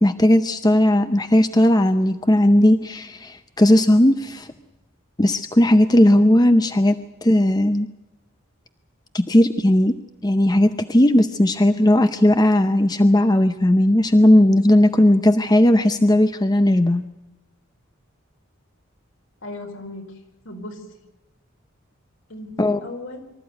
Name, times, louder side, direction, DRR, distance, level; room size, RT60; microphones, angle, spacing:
voice 1, 0.0-4.5 5.2-6.9 7.2-7.9 9.1-10.0 10.2-17.0 22.6-22.8, left 1 dB, 20° left, 9 dB, 0.6 m, -16 dB
voice 2, 19.4-20.9 22.3-23.2, left 2 dB, 70° left, 3 dB, 4.8 m, -37 dB
24.5 x 14.0 x 9.4 m, 1.0 s
head